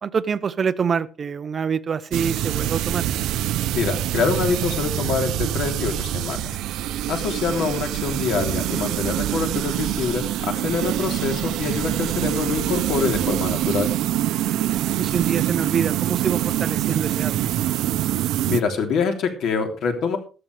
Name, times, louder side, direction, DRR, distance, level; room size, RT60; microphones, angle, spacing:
voice 1, 0.0-3.1 15.0-17.4, right 6 dB, 30° right, 0.7 m, -25 dB
sound 1, 2.1-18.6, right 13 dB, 80° right, 0.7 m, -25 dB
voice 2, 3.7-6.6 7.1-13.9 18.4-20.2, left 5 dB, 60° left, 3.2 m, -25 dB
14.5 x 13.5 x 3.4 m
cardioid pair, 165°, 0 cm